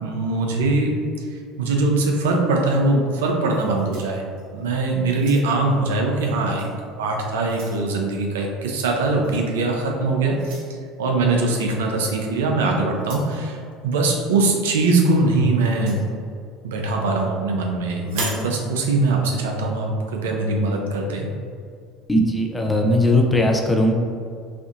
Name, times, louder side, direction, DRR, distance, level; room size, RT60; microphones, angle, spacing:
voice 1, 0.0-0.9 1.6-4.2 4.5-6.7 7.0-10.5 11.0-16.0 16.6-21.3, right 2 dB, 85° right, 1 dB, 0.6 m, -22 dB
sound 1, 3.5-4.6 5.1-5.7 6.5-6.7 7.1-7.8 9.2-9.5 10.4-10.7 12.0-12.2 12.9-13.4 15.6-16.0 18.0-18.5, right 3 dB, 70° right, 1.1 m, -36 dB
voice 2, 22.1-23.9, left 1 dB, 15° left, 2 dB, 0.7 m, -18 dB
5.9 x 2.7 x 2.5 m, 2.3 s
hypercardioid pair, 80°, 0 cm